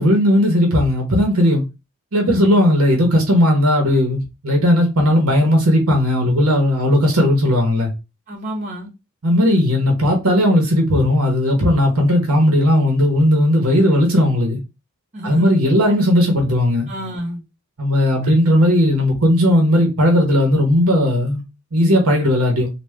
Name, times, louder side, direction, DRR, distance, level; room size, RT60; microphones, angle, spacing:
voice 1, 0.0-1.6 2.1-7.9 9.2-14.6 15.2-16.9 17.8-21.4 21.7-22.7, left 1 dB, 70° right, 1.0 m, -16 dB
voice 2, 2.2-2.6 8.3-8.9 15.1-15.6 15.8-15.9 16.9-17.4 18.2-18.5, equal, 35° right, 1.1 m, -29 dB
3.5 x 2.3 x 3.2 m
head